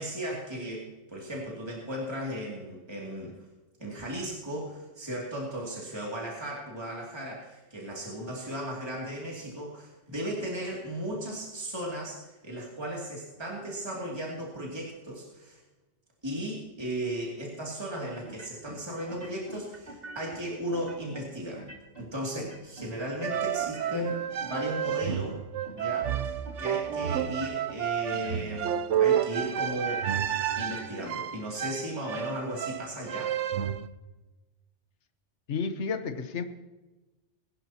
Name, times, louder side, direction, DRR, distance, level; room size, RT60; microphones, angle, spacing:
voice 1, 0.0-3.3 3.8-15.6 16.2-21.6 22.0-25.4 25.7-28.7 29.0-30.1 30.6-33.4, equal, 20° right, -3 dB, 2.7 m, -36 dB
sound 1, 18.2-18.8 19.1-20.4 20.7-21.2 21.5-22.1 22.4-22.9 23.2-25.4 25.6-26.2 26.5-27.0 27.3-27.8 28.1-28.7 28.9-31.1, right 2 dB, 50° right, 2.8 m, -45 dB
sound 2, 23.2-33.9, right 9 dB, 85° right, 1.0 m, -30 dB
voice 2, 35.5-36.4, left 5 dB, 70° left, 8 dB, 1.3 m, -31 dB
22.5 x 11.0 x 2.9 m, 1.1 s
omnidirectional pair, 1.2 m